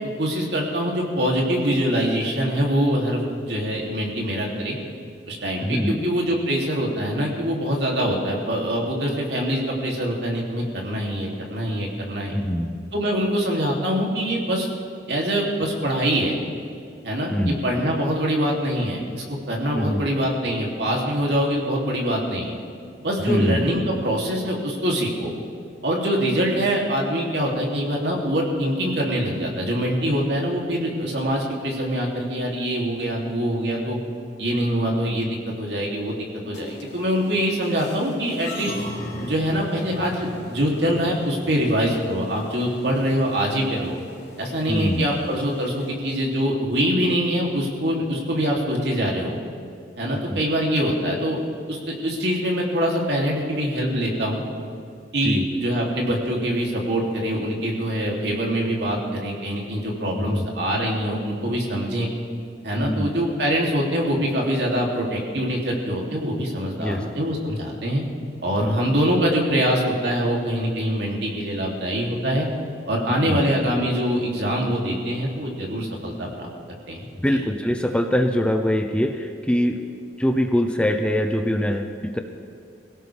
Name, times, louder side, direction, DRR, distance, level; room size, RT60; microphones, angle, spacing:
voice 1, 0.2-4.8 5.3-12.3 12.9-14.7 15.1-16.4 17.0-22.5 23.0-25.3 25.8-34.0 34.4-35.3 35.6-36.2 36.4-38.7 39.2-44.0 44.4-49.4 50.0-51.4 51.7-54.4 55.1-62.1 62.6-68.0 68.4-72.5 72.9-76.5 76.9-77.0, equal, 70° right, -2 dB, 3.0 m, -24 dB
voice 2, 5.6-6.1 12.3-12.8 17.3-17.6 19.7-20.1 23.3-23.7 44.7-45.1 50.3-50.4 55.2-55.5 60.1-60.5 62.8-63.1 66.8-67.0 68.6-68.8 73.2-73.4 77.2-79.8 80.2-82.2, equal, 5° left, 5 dB, 0.7 m, -23 dB
sound 1, 36.5-45.9, left 1 dB, 90° left, 3.0 m, -40 dB
24.0 x 17.0 x 3.5 m, 2.3 s
head